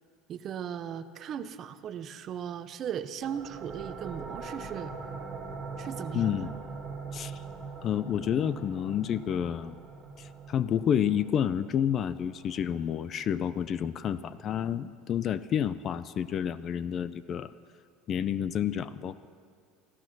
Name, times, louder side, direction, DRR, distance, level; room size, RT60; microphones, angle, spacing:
voice 1, 0.3-5.0 5.8-6.4, right 8 dB, 35° right, 12 dB, 0.7 m, -37 dB
sound 1, 3.2-14.6, right 4 dB, 10° right, 2.5 m, -43 dB
voice 2, 6.1-6.5 7.1-7.4 7.8-9.7 10.2-17.5 18.1-19.3, left 9 dB, 35° left, 15 dB, 0.4 m, -29 dB
15.0 x 14.5 x 6.1 m, 2.1 s
cardioid pair, 145°, 0 cm